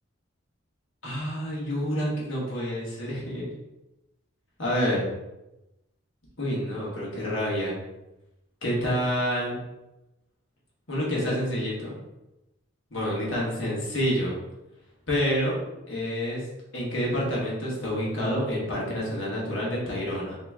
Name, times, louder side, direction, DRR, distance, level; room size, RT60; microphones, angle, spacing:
voice 1, 1.0-3.5 4.6-5.0 6.4-7.7 8.6-9.6 10.9-12.0 12.9-14.4 15.1-15.6 15.9-16.4 16.7-20.4, equal, 75° left, -5 dB, 1.5 m, -28 dB
3.8 x 3.0 x 3.6 m, 0.96 s
head